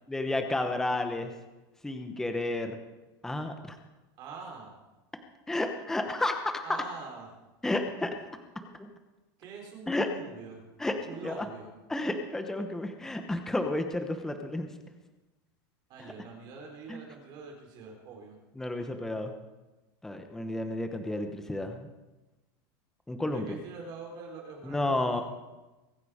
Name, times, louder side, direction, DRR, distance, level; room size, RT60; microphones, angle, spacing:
voice 1, 0.1-1.3 1.8-2.8 3.2-3.5 5.5-6.8 7.6-8.1 8.8-8.9 9.9-10.1 10.8-11.5 11.9-14.7 16.9-17.0 18.6-19.3 20.0-21.9 23.1-23.5 24.6-25.2, left 2 dB, 5° left, 6 dB, 0.9 m, -31 dB
voice 2, 4.2-4.8 6.6-7.3 9.4-10.6 11.1-11.7 15.9-18.4 23.3-25.2, right 5 dB, 35° right, 1 dB, 4.0 m, -44 dB
22.5 x 9.6 x 4.9 m, 1.1 s
supercardioid pair, 175°, 13 cm